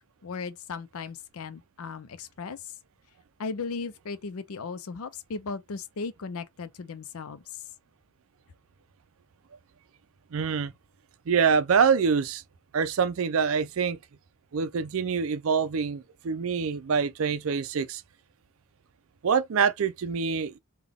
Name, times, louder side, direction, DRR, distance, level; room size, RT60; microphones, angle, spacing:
voice 1, 0.2-2.6 3.4-7.4, left 4 dB, 75° left, 0.5 m, -36 dB
voice 2, 10.3-10.7 11.3-12.4 12.7-14.0 14.5-18.0 19.2-20.6, right 6 dB, 70° right, 0.4 m, -25 dB
3.7 x 2.3 x 3.5 m
head